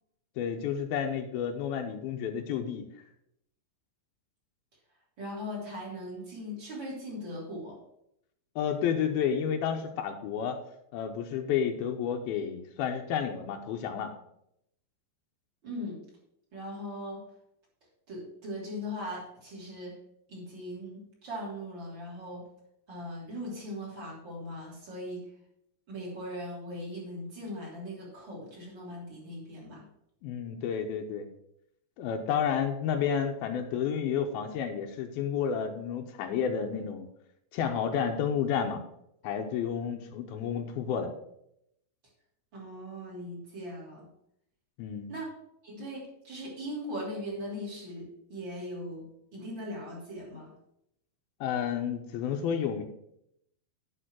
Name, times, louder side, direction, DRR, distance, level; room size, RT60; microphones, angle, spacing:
voice 1, 0.4-2.9 8.6-10.6 10.9-14.1 30.2-31.3 32.0-37.1 37.5-38.8 39.2-41.1 44.8-45.1 51.4-52.8, left 8 dB, 85° left, 4 dB, 2.6 m, -31 dB
voice 2, 5.2-7.8 15.6-16.0 16.5-17.2 18.1-19.9 20.3-22.5 22.9-25.2 25.9-29.8 42.5-44.1 45.1-45.3 45.6-49.0 49.3-50.5, equal, 30° right, -4 dB, 3.5 m, -39 dB
10.0 x 4.4 x 6.2 m, 0.76 s
omnidirectional pair, 4.3 m